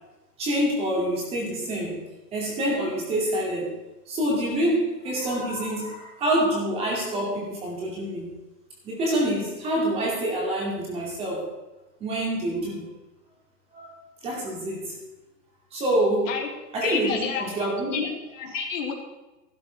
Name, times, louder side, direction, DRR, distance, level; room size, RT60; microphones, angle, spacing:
voice 1, 0.4-2.0 2.3-3.8 4.1-8.4 8.8-11.5 12.0-12.9 13.7-13.9 14.2-15.0 15.7-16.4 16.7-18.0, right 1 dB, 10° right, -2 dB, 2.5 m, -26 dB
voice 2, 16.8-17.5 17.9-18.9, left 6 dB, 50° left, -1 dB, 3.4 m, -29 dB
15.0 x 12.0 x 4.6 m, 1.1 s
hypercardioid pair, 165°, 50 cm